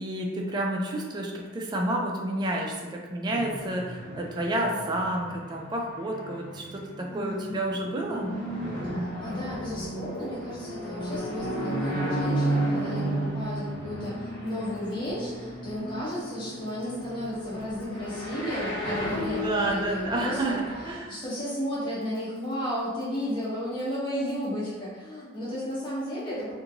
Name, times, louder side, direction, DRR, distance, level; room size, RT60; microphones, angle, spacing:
voice 1, 0.0-8.3 19.3-21.1, right 1 dB, 20° right, 0 dB, 0.3 m, -30 dB
sound 1, 3.2-20.9, right 1 dB, 55° left, 1.4 m, -33 dB
voice 2, 7.1-7.6 8.8-26.5, equal, 25° left, -9 dB, 0.8 m, -33 dB
2.8 x 2.6 x 2.6 m, 1.3 s
head